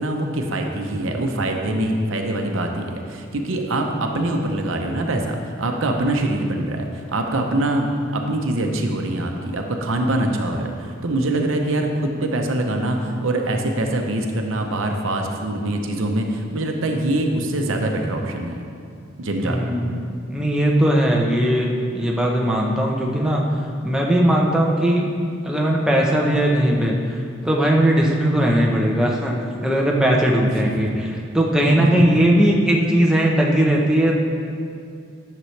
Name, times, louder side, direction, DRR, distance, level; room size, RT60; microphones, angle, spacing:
voice 1, 0.0-18.6 19.2-19.6 31.8-31.9, right 1 dB, 75° right, 3 dB, 0.8 m, -24 dB
voice 2, 19.4-23.4 23.8-25.1 25.4-27.2 27.4-34.2, right 1 dB, 5° right, -2 dB, 0.8 m, -19 dB
11.0 x 6.9 x 3.3 m, 2.4 s
head